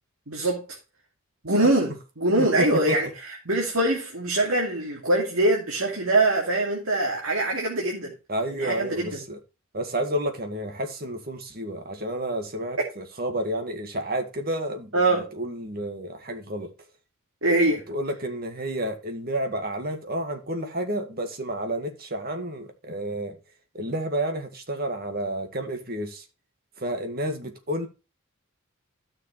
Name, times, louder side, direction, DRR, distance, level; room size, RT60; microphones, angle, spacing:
voice 1, 0.3-0.7 1.4-3.1 3.5-8.1 8.6-9.2 14.9-15.3 17.4-17.9, right 2 dB, 80° right, 2.6 m, -23 dB
voice 2, 2.4-3.0 8.3-9.4 9.7-15.0 15.3-16.7 17.9-23.4 23.7-26.3 26.8-27.9, right 1 dB, 45° right, 1.9 m, -30 dB
13.0 x 6.6 x 3.3 m
head